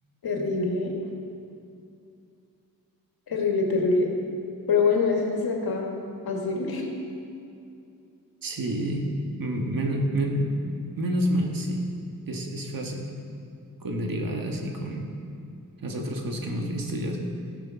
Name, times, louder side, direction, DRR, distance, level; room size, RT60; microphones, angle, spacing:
voice 1, 0.2-0.9 3.3-4.1 4.7-6.9, left 4 dB, 80° left, 0 dB, 1.9 m, -25 dB
voice 2, 8.4-9.1 9.4-10.6 11.0-11.9 12.3-13.1 13.8-15.1 15.8-17.2, right 1 dB, 65° right, 1 dB, 1.6 m, -28 dB
15.0 x 6.7 x 5.7 m, 2.5 s
cardioid pair, 70°, 37 cm